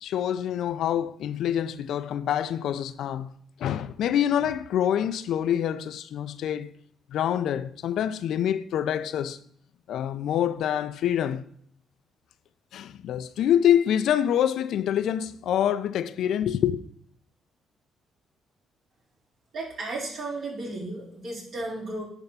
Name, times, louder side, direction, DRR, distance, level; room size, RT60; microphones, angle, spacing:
voice 1, 0.0-3.3 3.6-6.7 7.1-9.4 9.9-11.4 12.7-16.8, left 10 dB, 75° left, 0.4 m, -26 dB
voice 2, 19.5-22.0, right 2 dB, 60° right, 3.7 m, -34 dB
10.5 x 3.6 x 5.6 m
cardioid pair, 90°, 0 cm